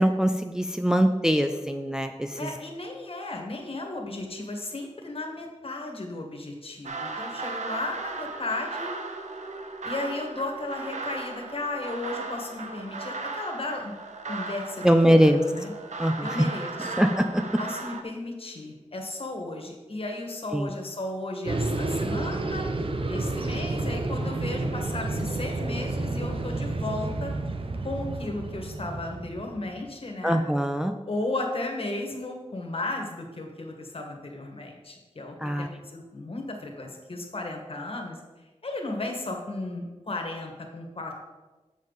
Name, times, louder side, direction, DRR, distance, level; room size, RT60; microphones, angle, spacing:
voice 1, 0.0-2.3 14.8-15.4 16.0-16.2 17.0-17.4 20.5-20.7 30.2-30.9 35.4-35.7, equal, 5° right, 6 dB, 0.4 m, -22 dB
voice 2, 2.4-8.9 9.8-13.9 14.3-15.7 16.2-17.1 17.6-22.7 23.1-27.3 27.8-30.4 31.1-38.2 38.6-41.2, left 2 dB, 50° left, 2 dB, 1.6 m, -35 dB
sound 1, 6.8-18.0, right 3 dB, 75° right, 0.8 m, -36 dB
sound 2, 21.5-29.8, right 2 dB, 50° right, 0.8 m, -30 dB
7.3 x 7.2 x 4.0 m, 1.2 s
wide cardioid pair, 65°, 12 cm